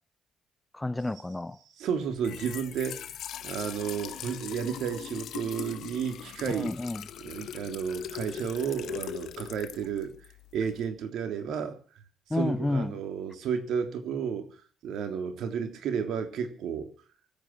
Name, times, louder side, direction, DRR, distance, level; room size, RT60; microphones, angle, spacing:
voice 1, 0.7-1.6 6.5-7.0 12.3-13.0, left 2 dB, 15° left, 1.2 m, -30 dB
voice 2, 1.8-6.7 7.2-10.1 10.5-11.8 12.3-14.6 14.8-16.9, right 7 dB, 70° right, 3.4 m, -32 dB
Trickle dribble / Fill (with liquid), 2.1-10.9, left 10 dB, 65° left, 1.3 m, -41 dB
24.0 x 9.2 x 6.1 m
hypercardioid pair, 50°, 0 cm